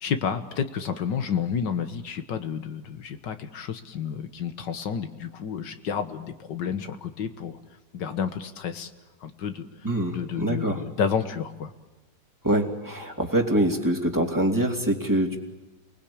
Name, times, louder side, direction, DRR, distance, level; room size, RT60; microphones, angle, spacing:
voice 1, 0.0-7.6 7.9-8.9 9.2-9.7 10.1-11.7, left 7 dB, 85° left, 8 dB, 2.0 m, -30 dB
voice 2, 9.8-10.8 12.4-15.4, right 1 dB, 10° right, 0 dB, 2.7 m, -24 dB
29.0 x 20.5 x 8.7 m, 1.1 s
omnidirectional pair, 1.9 m